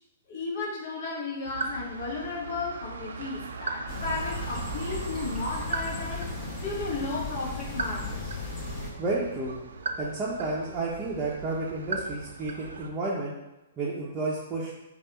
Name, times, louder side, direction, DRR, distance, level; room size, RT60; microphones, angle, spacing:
voice 1, 0.3-6.3 6.6-8.4, left 3 dB, 50° left, -2 dB, 1.1 m, -34 dB
sound 1, 1.4-12.9, right 4 dB, 70° right, 0.4 m, -38 dB
sound 2, 3.9-8.9, left 3 dB, 25° left, 1.3 m, -36 dB
voice 2, 9.0-9.5 10.0-13.3 13.8-14.7, right 2 dB, 20° right, -7 dB, 0.7 m, -31 dB
3.4 x 2.4 x 4.2 m, 0.98 s
figure-of-eight pair, 120°, 0 cm